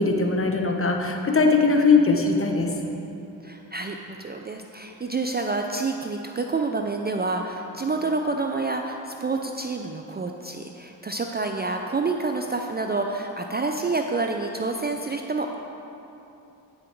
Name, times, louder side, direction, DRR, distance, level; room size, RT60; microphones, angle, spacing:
voice 1, 0.0-2.7, left 4 dB, 30° left, 3 dB, 1.2 m, -20 dB
voice 2, 3.4-15.6, right 3 dB, 20° right, 3 dB, 0.5 m, -28 dB
8.9 x 6.3 x 4.5 m, 2.9 s
supercardioid pair, 45°, 46 cm